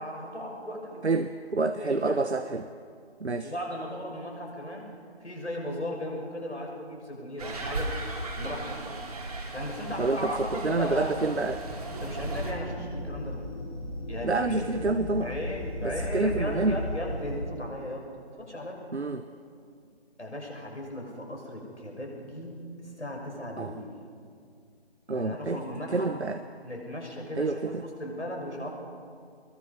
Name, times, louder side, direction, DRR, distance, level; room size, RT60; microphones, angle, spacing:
voice 1, 0.0-1.1 1.7-2.2 3.4-4.9 5.2-8.0 8.3-9.0 9.5-11.2 12.0-13.4 14.1-14.7 15.2-18.1 18.4-18.8 20.2-22.7 23.0-24.0 25.1-26.1 26.6-28.7, left 1 dB, 90° left, 0 dB, 6.6 m, -36 dB
voice 2, 1.0-2.7 3.2-3.5 10.0-11.6 14.2-15.3 15.8-16.8 18.9-19.2 23.6-23.7 25.1-25.6 25.9-26.4 27.4-27.8, right 3 dB, 75° right, 9 dB, 1.1 m, -28 dB
sound 1, 7.4-12.5, right 2 dB, 35° right, 2.8 m, -37 dB
sound 2, 9.7-17.4, equal, 10° left, 1.9 m, -37 dB
25.5 x 21.5 x 5.6 m, 2.3 s
figure-of-eight pair, 160°, 33 cm